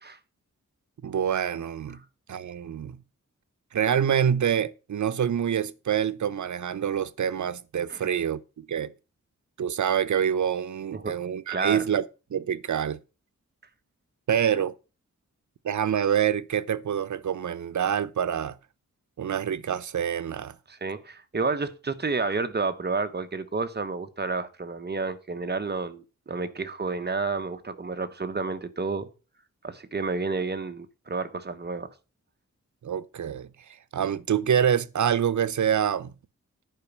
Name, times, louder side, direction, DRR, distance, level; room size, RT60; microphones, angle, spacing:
voice 1, 1.0-2.0 2.3-3.0 3.7-8.9 9.6-12.0 12.3-13.0 14.3-14.7 15.6-18.6 19.2-20.5 32.8-33.5 33.9-36.1, right 8 dB, 75° right, 0.7 m, -26 dB
voice 2, 11.5-11.8 20.7-29.1 29.6-31.9, right 4 dB, 35° right, 1.1 m, -30 dB
10.5 x 5.2 x 7.1 m
wide cardioid pair, 130°, 30 cm